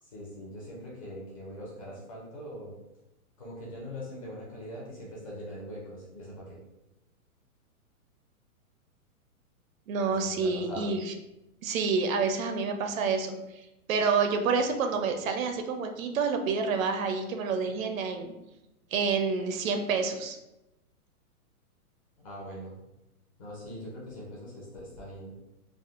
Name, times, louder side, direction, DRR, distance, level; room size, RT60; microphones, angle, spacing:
voice 1, 0.0-2.8 3.4-6.6 10.0-10.9 22.2-22.8 23.4-25.4, equal, 25° left, -5 dB, 0.5 m, -42 dB
voice 2, 9.9-11.1 11.6-13.4 13.9-18.3 18.9-20.4, right 5 dB, 65° right, 5 dB, 0.5 m, -28 dB
3.5 x 2.0 x 2.4 m, 0.93 s
hypercardioid pair, 155°, 44 cm